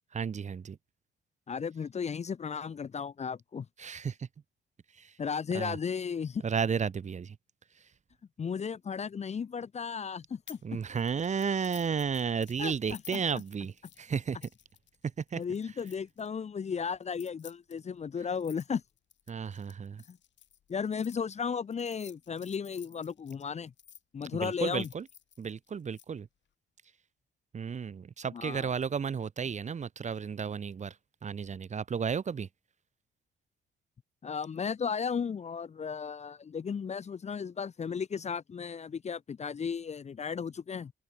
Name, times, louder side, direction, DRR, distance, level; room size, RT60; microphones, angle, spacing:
voice 1, 0.1-0.8 3.8-4.3 4.9-5.1 5.5-5.8 6.4-7.4 10.6-14.5 15.3-15.4 19.3-20.0 24.3-25.1 25.4-26.3 27.5-31.0 31.2-32.5, right 6 dB, 35° right, 1.0 m, -33 dB
voice 2, 1.5-3.7 5.2-6.4 8.4-10.8 12.6-13.2 15.4-18.8 20.1-20.2 20.7-23.7 24.1-24.9 28.3-28.7 34.2-40.9, left 6 dB, 35° left, 0.7 m, -35 dB
sound 1, 10.5-10.7 11.0-16.3 17.0-21.1 21.7-24.0 24.4-26.0, left 10 dB, 65° left, 4.9 m, -54 dB
open air
cardioid pair, 90°, 20 cm